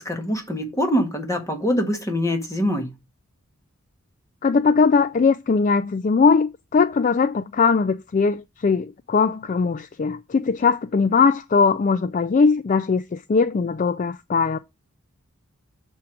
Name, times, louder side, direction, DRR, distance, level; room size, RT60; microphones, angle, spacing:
voice 1, 0.0-2.9, equal, 15° left, 1.5 m, -24 dB
voice 2, 4.4-14.6, left 5 dB, 35° left, 0.3 m, -20 dB
7.1 x 4.5 x 4.8 m
head